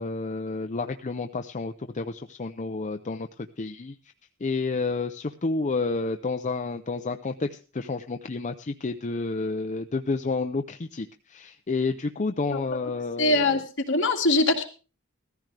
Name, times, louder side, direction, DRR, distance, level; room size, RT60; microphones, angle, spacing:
voice 1, 0.0-3.9 4.4-13.6, left 3 dB, 35° left, 6 dB, 0.6 m, -30 dB
voice 2, 13.2-13.6 13.9-14.6, left 2 dB, 60° left, 2 dB, 2.3 m, -22 dB
15.0 x 14.0 x 3.4 m, 0.35 s
head